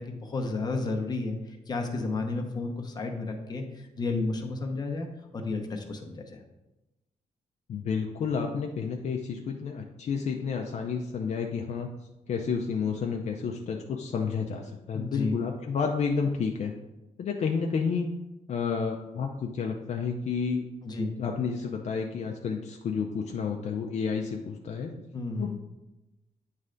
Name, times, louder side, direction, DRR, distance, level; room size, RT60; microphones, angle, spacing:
voice 1, 0.0-1.4 1.7-3.6 4.0-5.1 5.3-6.4 14.9-15.3 20.8-21.1 25.1-25.6, left 3 dB, 30° left, 3 dB, 0.8 m, -32 dB
voice 2, 7.7-11.9 12.3-16.7 17.2-18.1 18.5-20.6 21.2-24.9 25.4-25.6, left 5 dB, 55° left, 2 dB, 0.5 m, -30 dB
9.3 x 3.2 x 3.8 m, 1.0 s
wide cardioid pair, 155°, 14 cm